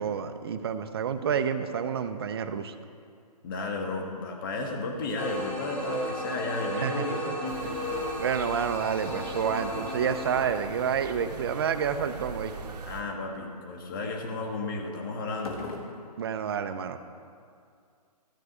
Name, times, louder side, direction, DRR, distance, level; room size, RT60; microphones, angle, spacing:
voice 1, 0.0-2.7 6.8-7.4 7.6-12.5 16.2-17.0, right 7 dB, 40° right, 9 dB, 0.6 m, -29 dB
voice 2, 3.4-7.6 12.9-15.7, left 3 dB, 30° left, 2 dB, 1.4 m, -33 dB
sound 1, 5.2-10.4, equal, 5° left, 0.7 m, -34 dB
sound 2, 7.5-13.0, right 4 dB, 80° right, 1.1 m, -42 dB
sound 3, 12.5-12.7 15.4-16.2, left 3 dB, 65° left, 1.5 m, -41 dB
13.5 x 4.7 x 7.9 m, 2.3 s
hypercardioid pair, 165°, 21 cm